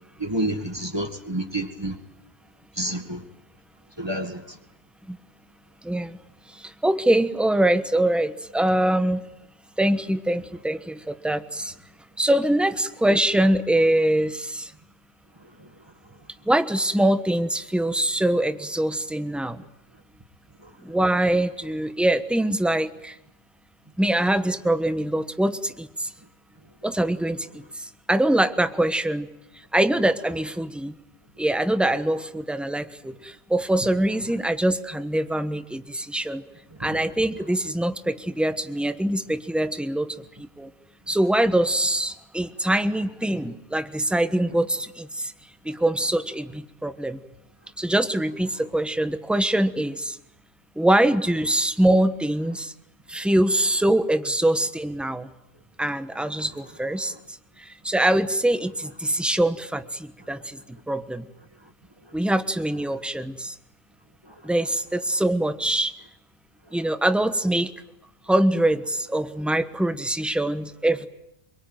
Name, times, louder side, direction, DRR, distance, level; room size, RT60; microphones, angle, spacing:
voice 1, 0.2-2.0 2.8-3.2 4.0-4.4 20.6-20.7 36.8-37.1, right 1 dB, 25° right, 5 dB, 2.2 m, -29 dB
voice 2, 5.8-6.2 6.5-9.2 9.8-11.7 12.2-14.7 16.4-19.6 20.8-23.2 24.0-26.1 26.8-29.3 29.7-30.9 31.4-36.4 36.8-40.7 41.1-45.3 45.6-47.2 47.8-50.2 50.8-52.7 53.1-55.3 55.8-57.1 57.6-61.3 62.1-63.5 64.4-65.9 66.7-67.7 68.3-71.1, right 1 dB, ahead, 10 dB, 1.2 m, -23 dB
25.0 x 23.5 x 9.2 m, 0.84 s
omnidirectional pair, 1.1 m